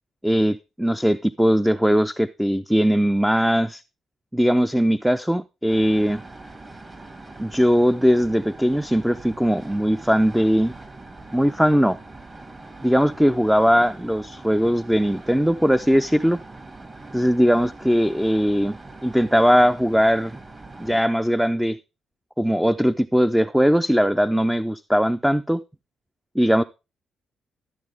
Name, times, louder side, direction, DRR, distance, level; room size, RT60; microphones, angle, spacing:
voice 1, 0.2-3.8 4.3-6.2 7.4-10.7 11.3-12.0 12.8-16.4 17.1-18.8 19.0-20.4 20.8-21.8 22.4-25.6 26.4-26.6, equal, 5° right, 0.4 m, -20 dB
sound 1, 5.7-21.0, right 2 dB, 30° right, 2.1 m, -42 dB
13.0 x 8.3 x 3.5 m
cardioid pair, 90°, 0 cm